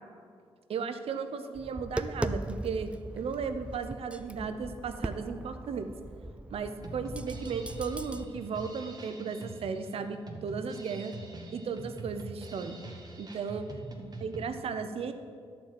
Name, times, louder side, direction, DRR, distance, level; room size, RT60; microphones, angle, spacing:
voice 1, 0.7-2.9 3.1-5.9 6.5-11.1 11.5-12.8 13.2-13.6 14.2-15.1, right 5 dB, 70° right, 9 dB, 0.7 m, -35 dB
Tap, 1.6-8.2, right 1 dB, 10° right, 0.4 m, -39 dB
Drum kit, 6.8-14.5, right 2 dB, 40° right, 1.3 m, -44 dB
11.0 x 4.6 x 7.6 m, 2.2 s
cardioid pair, 75°, 10 cm